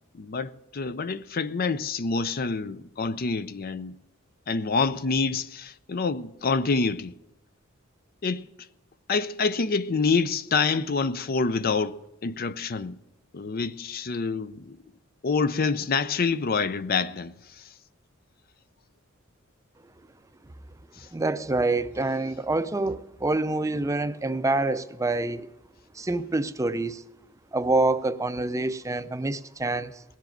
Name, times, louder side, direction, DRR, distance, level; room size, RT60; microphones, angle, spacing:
voice 1, 0.1-3.9 4.5-7.1 8.2-8.4 9.1-13.0 13.3-14.8 15.2-17.7 21.0-21.1, left 4 dB, 45° left, 0.5 m, -27 dB
voice 2, 21.1-25.5 25.9-27.0 27.5-30.0, right 2 dB, 15° right, 0.5 m, -26 dB
18.5 x 7.5 x 9.1 m
head